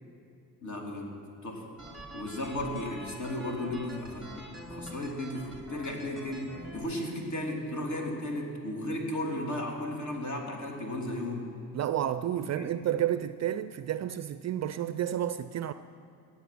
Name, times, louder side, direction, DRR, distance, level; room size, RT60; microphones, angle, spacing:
voice 1, 0.6-1.7 2.1-11.5 12.6-12.8, left 1 dB, 40° left, 3.4 m, -35 dB
sound 1, 1.8-6.8, right 1 dB, ahead, 4.3 m, -45 dB
voice 2, 11.7-15.7, right 11 dB, 40° right, 0.5 m, -31 dB
17.0 x 9.6 x 6.1 m
hypercardioid pair, 50°, 44 cm